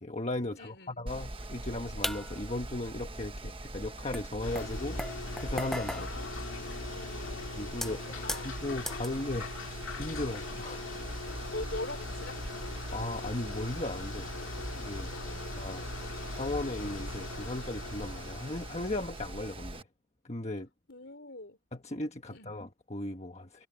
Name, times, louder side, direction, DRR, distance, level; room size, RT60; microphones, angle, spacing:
voice 1, 0.0-5.0 5.4-6.1 7.6-10.8 12.9-14.3 14.8-15.1 15.5-15.8 16.3-19.9 20.2-20.7 21.7-23.7, left 2 dB, 30° left, 1.4 m, -37 dB
voice 2, 0.6-1.1 5.9-6.4 6.9-7.5 8.2-8.6 11.5-12.4 15.1-15.5 20.9-21.6 22.3-22.5, left 2 dB, 55° left, 4.4 m, -43 dB
Mechanical fan, 1.1-19.8, right 1 dB, 25° right, 1.3 m, -42 dB
sound 1, 2.0-2.6 3.5-3.6 4.1-7.2 7.7-9.2 9.7-9.9 10.3-10.4 11.4-12.1 12.5-12.7 13.4-13.6, left 1 dB, ahead, 0.4 m, -39 dB
sound 2, 4.4-19.7, left 2 dB, 75° left, 2.1 m, -41 dB
head